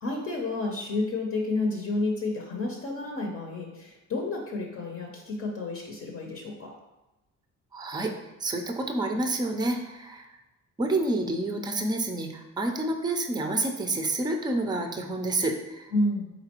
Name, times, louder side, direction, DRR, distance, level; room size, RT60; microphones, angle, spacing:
voice 1, 0.0-6.7 15.9-16.3, left 2 dB, 50° left, 0 dB, 0.7 m, -30 dB
voice 2, 7.7-8.1 8.4-10.3 10.8-15.9, right 2 dB, 15° right, 4 dB, 0.5 m, -28 dB
4.2 x 3.9 x 2.9 m, 1.0 s
cardioid pair, 90°, 30 cm